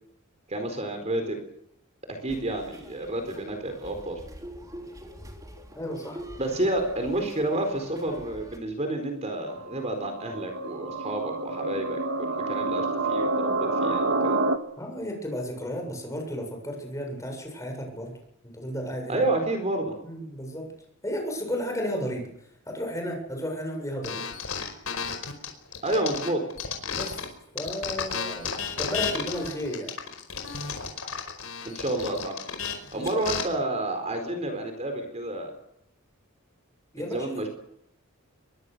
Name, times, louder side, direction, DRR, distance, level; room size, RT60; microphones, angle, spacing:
voice 1, 0.5-1.4 2.1-4.2 6.4-14.4 19.1-19.9 25.8-26.4 31.6-32.4 32.9-35.5 37.0-37.5, right 1 dB, 30° right, 5 dB, 4.3 m, -30 dB
sound 1, 2.3-8.6, equal, 15° right, 3.4 m, -45 dB
voice 2, 5.7-6.2 14.8-18.1 18.4-19.3 20.0-20.7 21.0-22.3 22.7-24.2 26.9-27.3 27.5-29.9 32.9-33.3 36.9-37.2, equal, 15° left, 2 dB, 7.4 m, -33 dB
sound 2, 9.5-14.6, right 2 dB, 80° right, 2.0 m, -28 dB
sound 3, 24.0-27.3 27.6-33.4, left 6 dB, 80° left, 5.0 m, -33 dB
25.0 x 23.0 x 6.9 m, 0.79 s
head